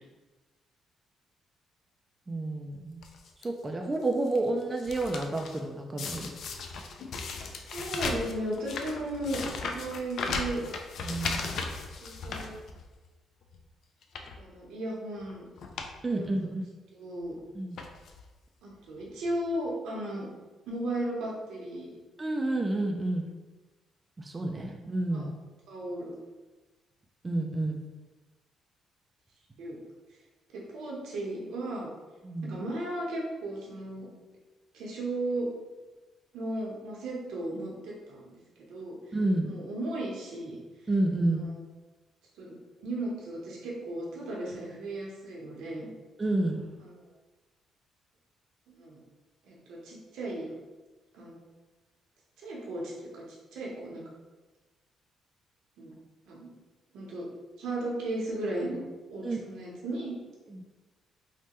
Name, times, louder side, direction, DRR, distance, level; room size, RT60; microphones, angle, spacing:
voice 1, 2.3-3.0 3.4-6.3 11.0-11.5 16.0-16.6 17.5-17.8 22.2-23.3 24.2-25.3 27.2-27.8 32.2-32.6 39.1-39.5 40.9-41.5 46.2-46.6 59.2-59.4 60.5-60.6, right 2 dB, 25° right, 2 dB, 0.3 m, -30 dB
sound 1, 3.0-3.4 4.0-5.6 6.0-13.1 13.5-13.6 14.0-14.4 15.2-15.3 15.6-15.9 16.2-16.3 17.2-17.4 17.8-18.3 19.0-19.1 19.3-19.4, left 4 dB, 65° left, 0.3 m, -37 dB
voice 2, 7.7-10.6 12.0-12.6 14.4-15.4 16.1-16.3 16.9-17.3 18.6-20.3 20.7-21.9 24.5-24.6 25.1-25.3 25.7-26.1 29.6-29.8 30.5-31.9 32.4-34.1 34.7-35.5 36.3-38.4 38.7-39.0 39.4-40.6 41.2-41.6 42.4-45.9 46.8-47.0 48.7-49.0 49.4-50.5 51.1-51.4 52.4-54.0 55.8-55.9 56.3-56.5 56.9-57.3 57.6-58.8 59.1-60.2, right 1 dB, 85° right, -3 dB, 0.8 m, -35 dB
3.2 x 2.1 x 2.9 m, 1.2 s
cardioid pair, 90°, 0 cm